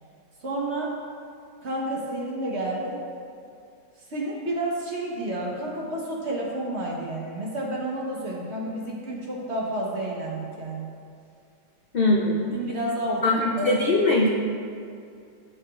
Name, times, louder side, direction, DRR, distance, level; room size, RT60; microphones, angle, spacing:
voice 1, 0.4-1.0 1.6-3.0 4.1-10.9 12.5-13.7, right 1 dB, 45° right, -3 dB, 1.3 m, -30 dB
voice 2, 11.9-12.6 13.2-14.3, left 2 dB, 65° left, -2 dB, 0.5 m, -21 dB
13.5 x 6.0 x 2.4 m, 2.3 s
omnidirectional pair, 1.8 m